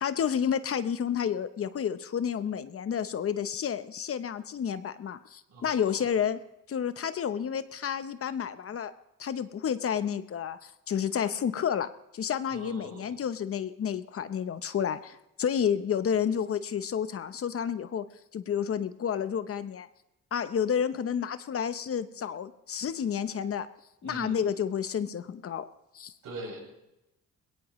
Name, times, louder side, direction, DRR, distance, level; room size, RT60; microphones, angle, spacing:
voice 1, 0.0-6.4 6.7-8.9 9.2-11.9 12.1-18.1 18.3-19.9 20.3-23.7 24.0-25.6 25.9-26.1, left 8 dB, 50° left, 12 dB, 0.9 m, -30 dB
voice 2, 5.5-6.0 12.5-13.1 24.0-24.4 26.2-26.6, right 2 dB, 70° right, -2 dB, 6.7 m, -42 dB
20.5 x 17.5 x 3.1 m, 0.90 s
cardioid pair, 90°, 30 cm